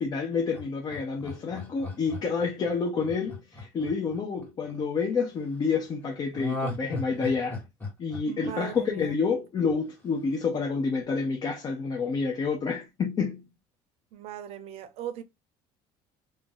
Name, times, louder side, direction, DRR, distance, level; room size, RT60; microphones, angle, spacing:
voice 1, 0.0-7.6 8.0-13.5, left 5 dB, 35° left, 0.5 m, -29 dB
Laughter, 0.5-4.8 6.3-9.3 9.7-9.8, left 2 dB, 15° left, 1.2 m, -37 dB
voice 2, 8.3-9.1 14.1-15.2, right 10 dB, 60° right, 0.6 m, -38 dB
2.6 x 2.0 x 3.6 m
cardioid pair, 120°, 12 cm